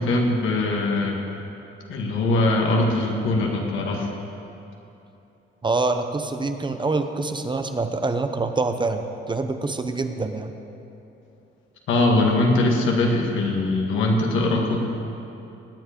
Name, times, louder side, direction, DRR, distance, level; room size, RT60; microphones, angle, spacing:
voice 1, 0.1-1.2 1.9-4.1 11.9-14.8, left 2 dB, 80° left, 0 dB, 2.0 m, -21 dB
voice 2, 5.6-10.5, right 3 dB, 25° right, 7 dB, 0.8 m, -25 dB
19.0 x 7.8 x 5.2 m, 2.9 s
cardioid pair, 90°, 20 cm